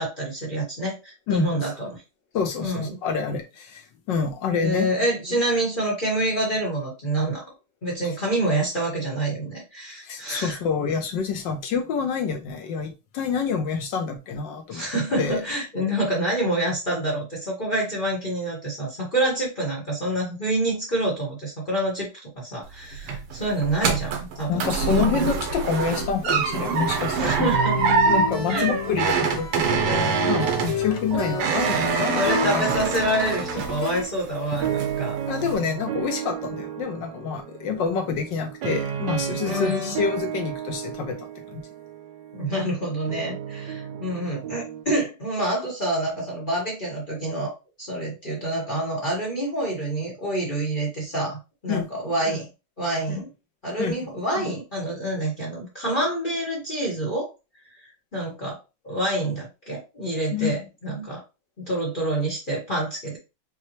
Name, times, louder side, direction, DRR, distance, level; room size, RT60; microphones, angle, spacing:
voice 1, 0.0-2.0 2.6-3.0 4.6-7.4 7.8-10.6 14.7-24.6 25.0-25.2 27.1-28.0 28.5-28.8 32.1-35.1 39.4-40.0 42.3-52.5 52.8-53.3 53.6-57.3 57.8-58.6 58.8-61.2 61.6-63.2, right 1 dB, 30° left, 1.1 m, -27 dB
voice 2, 1.3-1.6 2.3-4.9 10.0-14.9 15.2-15.4 24.5-27.5 28.1-32.6 35.3-41.6 51.7-51.9 53.1-53.2 53.8-54.1 60.3-60.6, left 6 dB, 65° left, 1.3 m, -27 dB
sound 1, 22.6-34.2 34.5-35.0 35.4-35.5, right 6 dB, 85° right, 1.8 m, -25 dB
sound 2, 26.0-34.0, left 4 dB, 80° left, 2.1 m, -30 dB
sound 3, 29.9-44.8, right 9 dB, 65° right, 1.3 m, -34 dB
5.5 x 2.3 x 3.0 m
omnidirectional pair, 2.4 m